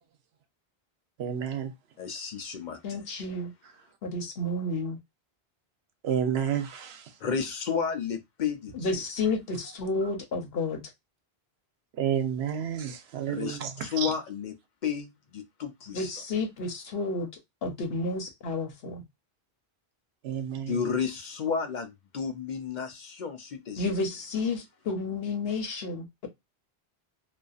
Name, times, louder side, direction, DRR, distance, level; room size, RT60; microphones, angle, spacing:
voice 1, 1.2-1.7 6.0-7.0 12.0-13.7 14.0-14.1 20.2-20.8, right 8 dB, 85° right, 0.9 m, -30 dB
voice 2, 2.0-3.0 7.2-8.9 13.3-14.5 14.8-16.2 20.7-23.8, left 6 dB, 55° left, 0.6 m, -32 dB
voice 3, 2.8-3.5 4.0-5.0 8.7-10.8 15.9-17.3 17.6-19.0 23.8-26.3, left 2 dB, 75° left, 1.0 m, -31 dB
2.5 x 2.4 x 2.3 m
omnidirectional pair, 1.0 m